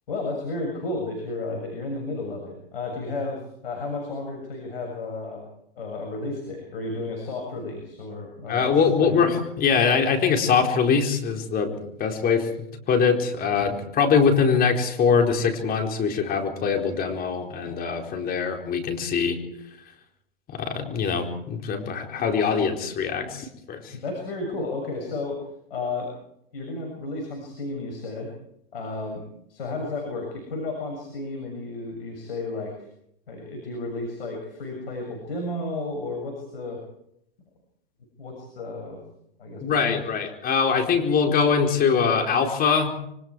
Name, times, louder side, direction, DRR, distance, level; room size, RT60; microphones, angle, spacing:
voice 1, 0.1-5.5 5.8-8.7 9.0-9.2 23.9-25.4 25.7-26.1 26.5-28.3 28.7-29.2 29.5-32.7 33.3-36.8 38.2-39.0 39.4-40.0, left 2 dB, 70° left, 2 dB, 7.0 m, -32 dB
voice 2, 8.5-12.5 12.9-19.4 20.5-24.0 39.6-43.0, left 6 dB, 30° left, 3 dB, 4.5 m, -23 dB
26.5 x 24.5 x 4.8 m, 0.75 s
hypercardioid pair, 105°, 30 cm